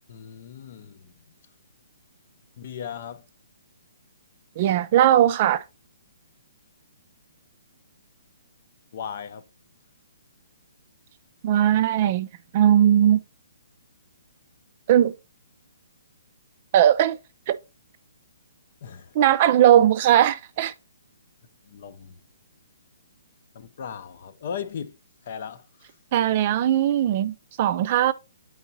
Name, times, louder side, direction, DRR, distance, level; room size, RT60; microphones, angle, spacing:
voice 1, 0.1-1.1 2.6-3.2 8.9-9.4 18.8-19.1 21.7-22.2 23.5-25.0 25.2-25.9, left 7 dB, 45° left, 0.6 m, -37 dB
voice 2, 4.6-5.6 11.4-12.3 12.5-13.2 14.9-15.1 16.7-17.2 17.5-17.6 19.1-20.7 26.1-28.1, right 11 dB, 35° right, 0.4 m, -19 dB
7.8 x 4.7 x 2.7 m
hypercardioid pair, 165°, 0 cm